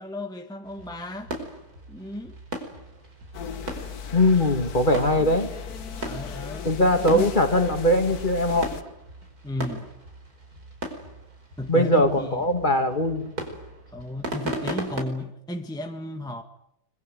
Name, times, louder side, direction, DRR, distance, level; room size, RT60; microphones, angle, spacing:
voice 1, 0.0-1.3 1.9-2.4 6.0-6.7 7.1-7.3 9.4-9.9 11.6-12.4 13.9-16.4, left 1 dB, ahead, 1.7 m, -34 dB
sound 1, 0.6-15.0, right 1 dB, 60° right, 5.6 m, -38 dB
sound 2, 3.3-8.8, left 6 dB, 65° left, 1.8 m, -36 dB
voice 2, 4.1-5.5 6.6-8.7 11.7-13.3, left 1 dB, 30° left, 2.8 m, -21 dB
25.0 x 23.0 x 9.4 m
omnidirectional pair, 1.8 m